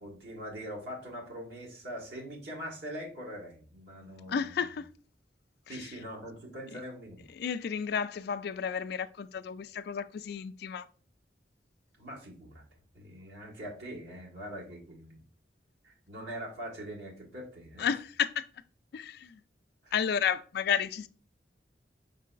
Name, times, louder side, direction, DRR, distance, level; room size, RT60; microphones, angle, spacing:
voice 1, 0.0-4.7 5.7-7.2 12.0-12.6 12.9-15.2 15.8-17.9 19.8-19.9, equal, 65° right, 1.4 m, -42 dB
voice 2, 4.3-4.9 5.7-5.9 6.7-6.8 7.3-10.9 17.8-18.5 18.9-19.4 19.9-21.1, left 7 dB, 60° left, 0.3 m, -32 dB
5.4 x 3.7 x 2.5 m
head